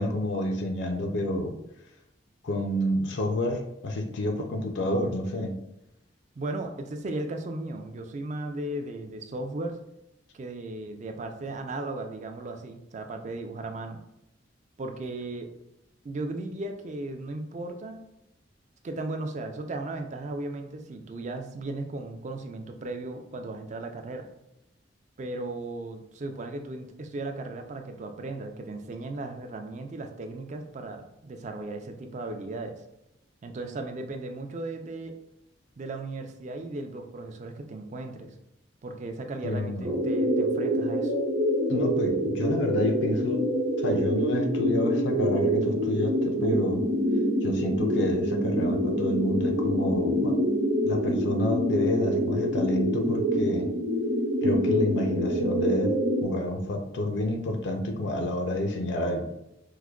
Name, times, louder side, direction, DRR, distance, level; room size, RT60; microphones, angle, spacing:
voice 1, 0.0-1.5 2.4-5.5 39.4-39.9 41.7-43.4 43.8-46.9 47.4-50.3 50.8-53.7 54.4-55.9 56.2-59.2, left 1 dB, 70° left, 3 dB, 0.5 m, -29 dB
voice 2, 6.4-9.8 10.3-14.0 14.8-15.5 16.0-18.0 18.8-24.3 25.2-32.8 33.4-35.2 35.8-38.3 38.8-41.1, right 2 dB, 40° right, 5 dB, 0.4 m, -36 dB
sound 1, 39.8-56.2, equal, 55° right, 0.8 m, -26 dB
4.7 x 2.1 x 2.3 m, 0.88 s
head